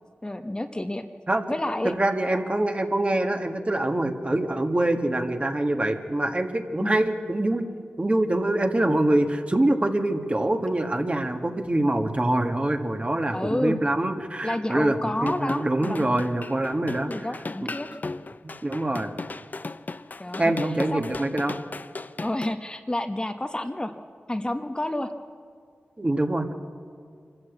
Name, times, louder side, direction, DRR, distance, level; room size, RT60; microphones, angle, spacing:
voice 1, 0.2-1.1 1.5-1.9 6.8-7.0 13.3-13.8 14.4-16.1 16.9-17.9 20.2-20.5 20.9-21.0 22.2-23.9 24.3-25.1, left 1 dB, 20° left, 6 dB, 1.0 m, -29 dB
voice 2, 1.8-7.7 8.0-17.3 17.6-17.7 18.4-19.1 20.4-21.6 26.0-26.6, right 1 dB, 30° right, 5 dB, 1.7 m, -25 dB
sound 1, 15.2-22.5, left 3 dB, 45° left, 0.6 m, -36 dB
25.0 x 14.0 x 8.2 m, 2.1 s
cardioid pair, 50°, 4 cm